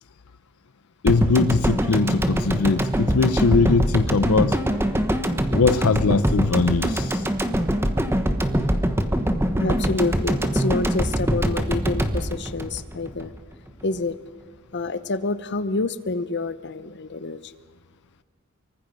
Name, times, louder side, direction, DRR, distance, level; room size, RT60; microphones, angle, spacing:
voice 1, 1.0-4.6 5.5-7.2, left 4 dB, 85° left, 0.6 m, -21 dB
sound 1, 1.1-13.4 13.7-13.8, equal, 10° right, 1.2 m, -23 dB
voice 2, 9.6-13.3 13.8-14.1 14.7-17.5, left 3 dB, 55° left, 0.9 m, -27 dB
25.0 x 24.0 x 5.4 m
head